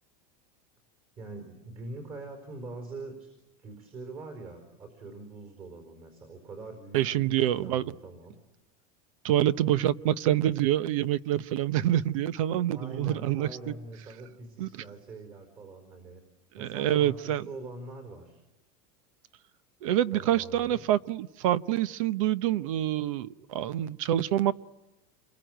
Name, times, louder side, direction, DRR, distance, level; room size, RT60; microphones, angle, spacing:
voice 1, 1.2-3.3 3.6-8.4 12.7-16.2 16.6-18.4 20.1-20.8, right 2 dB, 30° right, 5 dB, 4.7 m, -43 dB
voice 2, 6.9-7.9 9.2-13.7 14.6-14.8 16.5-17.5 19.8-24.5, right 12 dB, 65° right, 17 dB, 0.9 m, -26 dB
28.5 x 22.5 x 9.2 m, 1.0 s
supercardioid pair, 175°, 19 cm